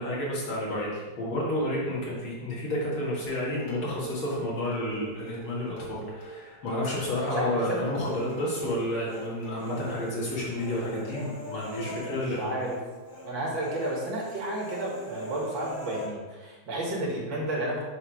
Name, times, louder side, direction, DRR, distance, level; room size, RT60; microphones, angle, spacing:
voice 1, 0.0-12.5, left 1 dB, 85° left, -5 dB, 2.8 m, -31 dB
Dishes pots and pans, 3.3-9.9, right 2 dB, 50° left, 2.1 m, -42 dB
voice 2, 7.2-7.8 11.8-12.8 13.2-17.8, right 1 dB, 65° right, -3 dB, 2.4 m, -32 dB
Human voice, 8.1-9.3 9.6-12.8 13.1-13.3 13.6-16.1, left 1 dB, 15° left, 0.7 m, -41 dB
7.0 x 3.4 x 5.9 m, 1.3 s
omnidirectional pair, 2.2 m